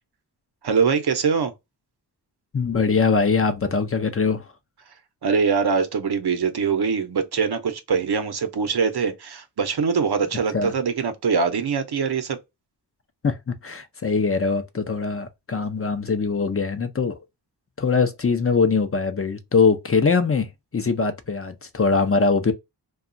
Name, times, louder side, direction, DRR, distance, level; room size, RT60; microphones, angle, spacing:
voice 1, 0.6-1.5 5.2-12.4, right 5 dB, 70° right, 0.8 m, -23 dB
voice 2, 2.5-4.4 10.5-10.7 13.2-17.2 17.8-22.5, left 4 dB, 35° left, 0.5 m, -22 dB
2.9 x 2.3 x 2.5 m
cardioid pair, 60°, 41 cm